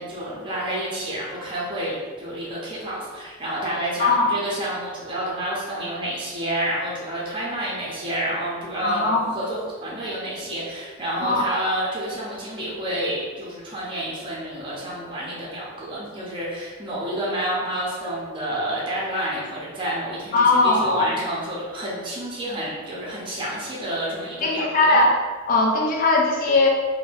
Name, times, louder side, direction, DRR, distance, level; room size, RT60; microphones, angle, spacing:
voice 1, 0.0-25.0, right 1 dB, 25° right, -5 dB, 0.6 m, -29 dB
voice 2, 8.8-9.3 11.2-11.5 20.3-21.2 24.4-25.1 25.5-26.7, left 2 dB, 40° left, -1 dB, 0.4 m, -19 dB
2.6 x 2.1 x 3.3 m, 1.5 s
head